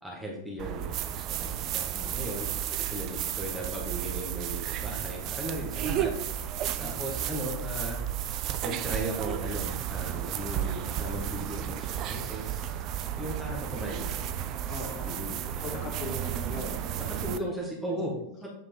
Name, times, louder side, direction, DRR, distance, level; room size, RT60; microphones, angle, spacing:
voice 1, 0.0-2.5 2.8-6.1 6.4-8.0 8.6-12.6 13.2-14.2 15.1-15.9 17.0-18.5, equal, ahead, -4 dB, 1.5 m, -37 dB
sound 1, 0.6-17.4, right 10 dB, 35° right, 0.5 m, -33 dB
voice 2, 6.7-7.1 14.1-14.4 14.7-15.2 15.6-17.3 17.9-18.0, left 2 dB, 35° left, 1 dB, 1.9 m, -41 dB
8.2 x 4.9 x 3.8 m, 0.79 s
figure-of-eight pair, 90°, 0 cm